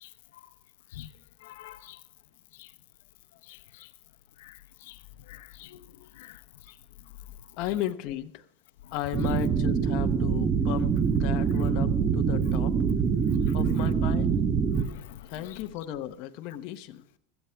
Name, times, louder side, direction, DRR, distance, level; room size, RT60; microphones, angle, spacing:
voice 1, 1.4-2.0 2.6-2.7 3.5-3.9 4.4-4.6 4.9-5.0 5.3-5.8 6.2-6.4 13.5-13.6 15.1-15.2, left 13 dB, 90° left, 0.7 m, -46 dB
voice 2, 7.6-8.5 8.9-12.8 13.5-14.4 15.2-17.0, left 12 dB, 50° left, 0.9 m, -35 dB
sound 1, 9.1-14.8, right 6 dB, 20° right, 0.9 m, -25 dB
16.5 x 13.5 x 3.4 m
supercardioid pair, 170°, 0 cm